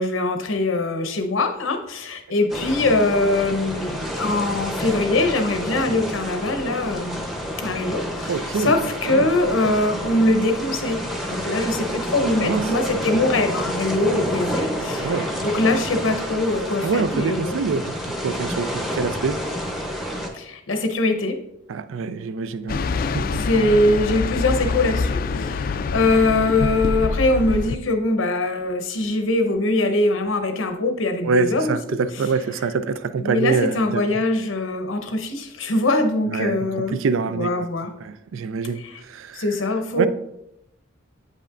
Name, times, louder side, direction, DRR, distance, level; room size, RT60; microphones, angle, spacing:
voice 1, 0.0-7.2 7.6-17.6 20.3-21.4 23.3-31.8 33.2-37.0 37.3-37.9 38.8-39.0 39.3-40.1, left 2 dB, 90° left, 0.8 m, -22 dB
sound 1, 2.5-20.3, equal, ahead, 0.7 m, -29 dB
voice 2, 8.3-8.8 9.1-9.3 12.4-12.7 15.0-15.3 16.8-19.4 21.7-22.8 23.1-23.4 31.2-34.0 36.3-37.7 38.0-39.4 40.0-40.1, right 5 dB, 85° right, 0.4 m, -25 dB
sound 2, 22.7-27.8, left 4 dB, 45° left, 0.3 m, -25 dB
8.5 x 5.4 x 2.5 m
head